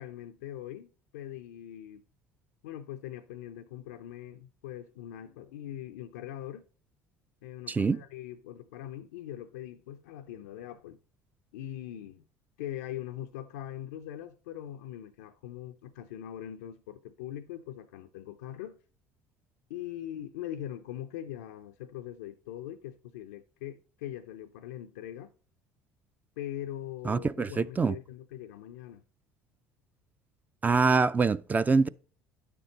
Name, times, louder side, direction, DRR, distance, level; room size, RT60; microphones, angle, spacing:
voice 1, 0.0-2.0 2.6-6.7 7.4-11.0 11.5-12.2 12.6-18.8 19.7-25.3 26.4-29.0, left 11 dB, 80° left, 0.5 m, -41 dB
voice 2, 7.7-8.0 27.0-28.0 30.6-31.9, right 4 dB, 20° right, 0.5 m, -25 dB
9.7 x 6.7 x 4.1 m
hypercardioid pair, 70°, 8 cm